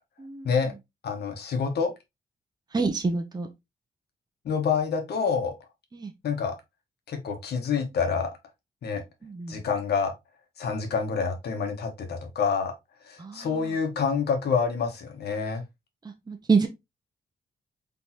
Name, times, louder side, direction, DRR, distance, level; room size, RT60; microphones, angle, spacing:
voice 1, 1.0-1.9 4.4-5.5 6.2-6.6 7.1-8.4 8.8-9.0 9.5-10.1 10.6-12.7 13.0-15.6, left 5 dB, 85° left, 1.2 m, -27 dB
voice 2, 2.7-3.5 5.9-6.1 9.2-9.6 13.2-13.5 16.3-16.7, right 4 dB, 25° right, 0.8 m, -26 dB
4.0 x 3.4 x 2.8 m
cardioid pair, 80°, 16 cm